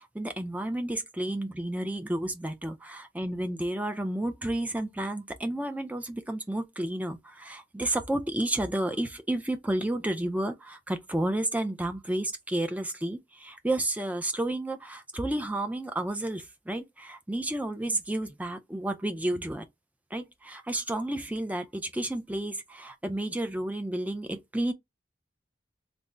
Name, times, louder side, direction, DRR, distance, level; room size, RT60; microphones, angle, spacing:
voice 1, 0.0-19.6 20.1-24.7, right 1 dB, 10° right, 0.5 m, -31 dB
3.4 x 2.1 x 3.7 m
head